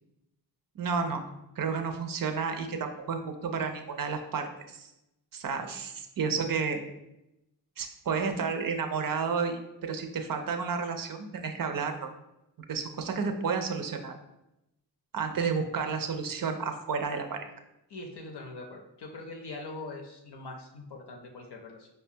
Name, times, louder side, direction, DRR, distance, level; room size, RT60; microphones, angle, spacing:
voice 1, 0.8-1.2 1.6-4.9 5.3-6.8 7.8-12.1 12.7-14.1 15.1-17.5, right 5 dB, 50° right, 6 dB, 0.5 m, -31 dB
voice 2, 17.9-21.9, left 2 dB, 65° left, 1 dB, 0.6 m, -42 dB
4.9 x 2.2 x 2.6 m, 0.88 s
wide cardioid pair, 100°, 44 cm